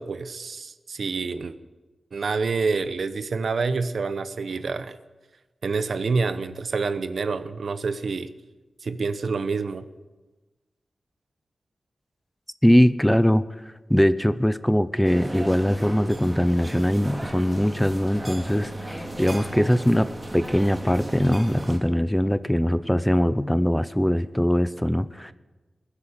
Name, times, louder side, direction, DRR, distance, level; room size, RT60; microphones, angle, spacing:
voice 1, 0.0-1.5 2.1-5.0 5.6-8.3 8.8-9.8, right 4 dB, 70° right, 12 dB, 0.8 m, -27 dB
voice 2, 12.6-25.3, equal, 5° left, 14 dB, 0.5 m, -21 dB
sound 1, 15.0-21.8, right 1 dB, 20° right, 2.2 m, -35 dB
21.0 x 8.4 x 6.7 m, 1.2 s
wide cardioid pair, 135°, 0 cm